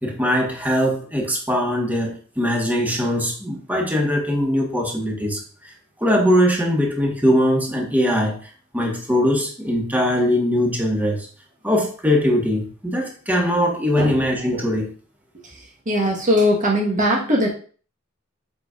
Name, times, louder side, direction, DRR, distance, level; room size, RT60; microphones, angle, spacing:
voice 1, 0.0-5.4 6.0-8.4 8.7-11.3 11.6-14.9, equal, 10° right, -1 dB, 1.5 m, -21 dB
voice 2, 15.9-17.5, equal, 40° right, -2 dB, 1.4 m, -19 dB
7.9 x 5.3 x 2.5 m, 0.42 s
head